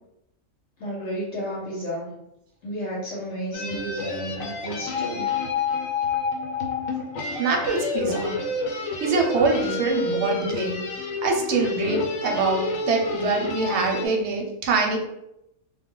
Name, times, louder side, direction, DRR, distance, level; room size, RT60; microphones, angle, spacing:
voice 1, 0.8-2.1 2.6-5.3, equal, 65° left, -6 dB, 1.0 m, -32 dB
sound 1, 3.5-14.1, left 3 dB, 90° left, 1.0 m, -29 dB
voice 2, 7.4-8.4 9.0-10.8 11.2-15.1, right 3 dB, 65° right, 2 dB, 0.8 m, -24 dB
2.3 x 2.1 x 3.7 m, 0.83 s
omnidirectional pair, 1.4 m